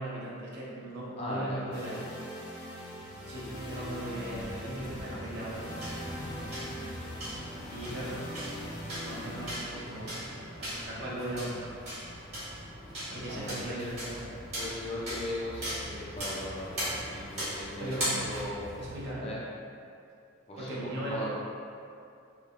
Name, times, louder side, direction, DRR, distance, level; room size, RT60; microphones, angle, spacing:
voice 1, 0.0-2.1 3.3-5.6 7.7-8.3 9.0-10.1 10.6-11.6 13.1-14.3 17.8-18.3 18.8-19.3 20.6-21.3, right 1 dB, 50° right, -6 dB, 0.5 m, -38 dB
voice 2, 1.2-1.8 6.1-6.5 13.3-13.9 14.5-18.7 19.2-19.4 20.5-21.3, left 1 dB, 30° left, -6 dB, 0.3 m, -38 dB
sound 1, 1.7-15.6, equal, 90° left, 0.6 m, -43 dB
sound 2, 4.3-19.1, equal, 30° right, 1.1 m, -39 dB
3.0 x 2.1 x 2.4 m, 2.5 s
head